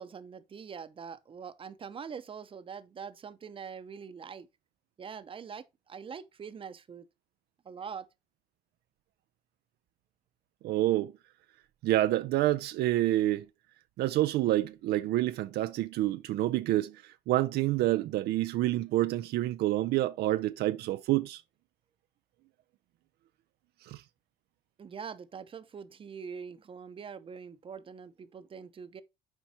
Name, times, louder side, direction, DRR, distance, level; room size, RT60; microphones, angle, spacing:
voice 1, 0.0-4.5 5.0-7.1 7.6-8.1 24.8-29.0, right 6 dB, 30° right, 0.7 m, -43 dB
voice 2, 10.6-11.1 11.8-13.5 14.0-21.4 23.8-24.0, right 15 dB, 75° right, 0.4 m, -28 dB
7.3 x 4.6 x 4.2 m
cardioid pair, 110°, 17 cm